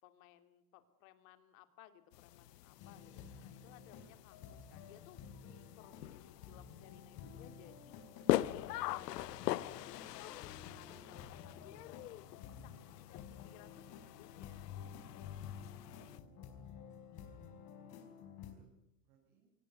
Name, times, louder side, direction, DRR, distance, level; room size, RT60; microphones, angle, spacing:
voice 1, 0.0-7.9 8.5-14.9, left 12 dB, 55° left, 10 dB, 3.0 m, -61 dB
sound 1, 2.1-16.2, left 15 dB, 85° left, 1.0 m, -42 dB
sound 2, 2.8-18.5, left 7 dB, 40° left, 4.7 m, -52 dB
voice 2, 17.4-19.5, right 5 dB, 70° right, -1 dB, 7.4 m, -72 dB
24.0 x 18.5 x 9.3 m, 0.88 s
supercardioid pair, 150°, 48 cm